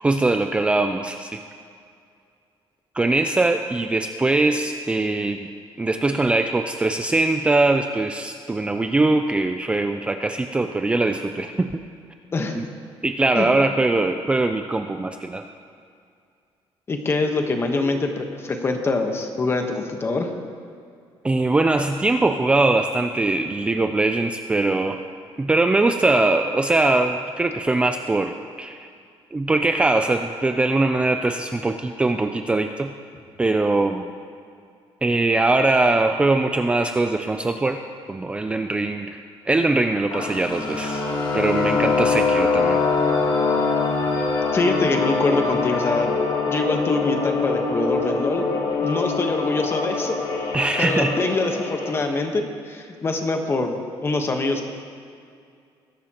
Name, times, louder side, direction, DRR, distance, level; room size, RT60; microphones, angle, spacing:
voice 1, 0.0-1.4 2.9-5.5 5.8-11.7 12.5-12.6 13.0-15.4 21.2-25.0 25.4-28.9 29.3-32.9 33.4-34.1 35.0-37.8 38.1-39.2 39.5-41.0 41.3-42.8 50.5-51.1, right 2 dB, 10° right, 6 dB, 0.4 m, -21 dB
voice 2, 12.3-12.6 13.3-13.5 16.9-20.3 44.5-46.1 46.5-48.4 48.8-50.2 50.8-54.7, left 3 dB, 25° left, 4 dB, 1.2 m, -24 dB
sound 1, 40.1-52.1, left 4 dB, 50° left, 2.1 m, -24 dB
21.0 x 11.5 x 3.0 m, 2.3 s
cardioid pair, 150°, 10 cm